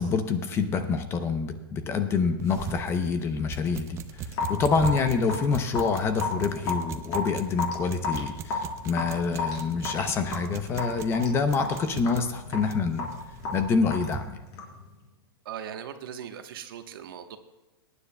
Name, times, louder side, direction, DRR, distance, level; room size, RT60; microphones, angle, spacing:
voice 1, 0.0-13.1 13.5-14.4, left 5 dB, 20° left, 9 dB, 0.7 m, -27 dB
sound 1, 2.4-14.3, right 7 dB, 20° right, 0.6 m, -40 dB
Raindrop / Drip, 4.3-14.8, left 4 dB, 35° left, 3.7 m, -34 dB
voice 2, 15.4-17.4, right 9 dB, 60° right, 7 dB, 1.1 m, -39 dB
22.0 x 9.8 x 2.2 m, 1.1 s
hypercardioid pair, 150°, 13 cm